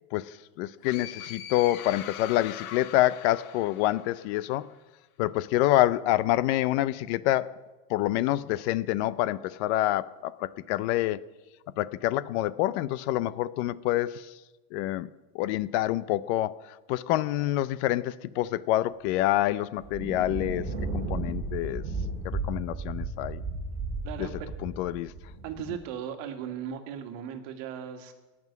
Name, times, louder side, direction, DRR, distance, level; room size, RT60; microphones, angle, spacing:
voice 1, 0.1-4.7 5.2-7.6 7.9-11.2 11.8-14.3 14.7-15.1 15.3-21.8 22.2-23.4 24.2-24.3 24.6-25.1, left 15 dB, 50° left, 0.6 m, -27 dB
sound 1, 0.8-4.5, left 11 dB, 70° left, 1.2 m, -42 dB
sound 2, 19.2-19.3 19.8-25.8, right 3 dB, 20° right, 2.7 m, -34 dB
voice 2, 24.0-24.5 25.4-28.1, right 9 dB, 55° right, 1.9 m, -37 dB
18.0 x 6.1 x 9.4 m
supercardioid pair, 145°, 45 cm